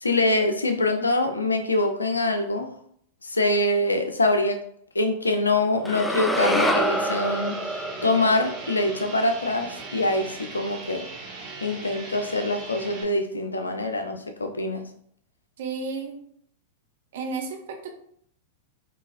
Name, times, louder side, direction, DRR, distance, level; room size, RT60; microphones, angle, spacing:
voice 1, 0.0-2.7 3.2-4.6 4.9-11.0 11.6-14.8, left 2 dB, 85° left, 6 dB, 0.4 m, -24 dB
sound 1, 5.8-10.1, equal, 5° left, 0.3 m, -27 dB
sound 2, 6.5-13.0, right 3 dB, 35° right, 1.0 m, -40 dB
voice 2, 15.6-16.2 17.1-17.9, right 4 dB, 60° right, 3 dB, 0.6 m, -32 dB
3.8 x 2.7 x 2.5 m, 0.67 s
figure-of-eight pair, 95°, 0 cm